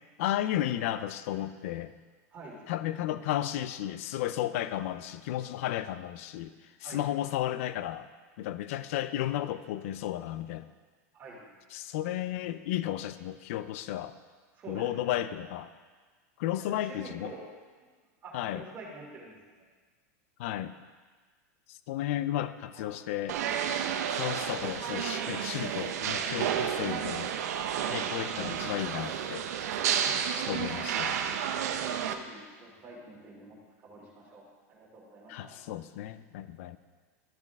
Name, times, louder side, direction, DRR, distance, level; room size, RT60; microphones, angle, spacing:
voice 1, 0.2-1.9 2.7-6.5 6.8-8.1 8.4-10.7 11.7-14.2 14.7-15.7 16.4-17.3 18.3-18.6 20.4-20.8 21.9-23.4 24.2-27.3 27.9-29.5 30.4-31.2 35.3-36.8, left 12 dB, 55° left, 13 dB, 0.4 m, -33 dB
voice 2, 11.1-11.5 14.5-15.4 16.7-17.5 18.2-19.7 22.7-23.0 31.6-35.6, right 2 dB, 25° right, -5 dB, 2.9 m, -47 dB
sound 1, 23.3-32.1, right 8 dB, 80° right, 0.7 m, -31 dB
14.0 x 5.3 x 3.6 m, 1.4 s
supercardioid pair, 155°, 9 cm